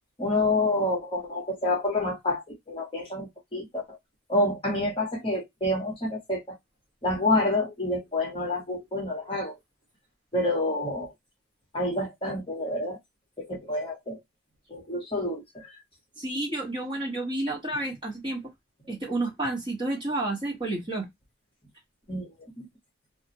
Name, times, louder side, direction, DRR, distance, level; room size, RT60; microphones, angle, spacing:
voice 1, 0.2-4.0 4.3-6.6 7.0-9.6 10.3-11.1 11.7-13.0 13.4-14.2 14.7-15.7 22.1-22.7, left 2 dB, 25° left, 0.8 m, -28 dB
voice 2, 16.2-18.4 18.9-21.1, right 2 dB, 25° right, 1.1 m, -30 dB
2.4 x 2.1 x 2.7 m
head